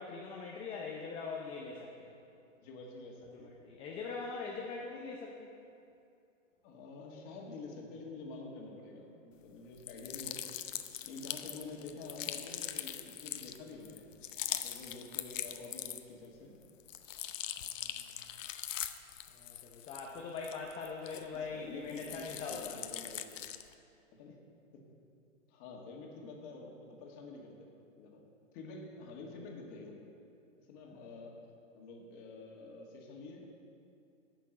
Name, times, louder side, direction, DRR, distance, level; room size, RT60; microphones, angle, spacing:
voice 1, 0.0-2.1 3.4-5.5 17.6-18.2 19.3-22.8 30.8-31.1, left 4 dB, 15° left, -1 dB, 0.5 m, -42 dB
voice 2, 2.6-3.5 6.6-10.4 11.0-14.0 14.5-16.6 21.3-23.5 24.1-24.4 24.7-24.8 25.5-27.7 28.0-28.2 28.5-30.0 30.7-31.4 31.7-33.5, left 3 dB, 35° left, 0 dB, 1.9 m, -48 dB
sound 1, 9.8-16.3 16.6-21.5 21.9-23.7, left 11 dB, 70° left, 0.8 m, -42 dB
11.0 x 6.1 x 7.9 m, 2.6 s
hypercardioid pair, 140°, 40 cm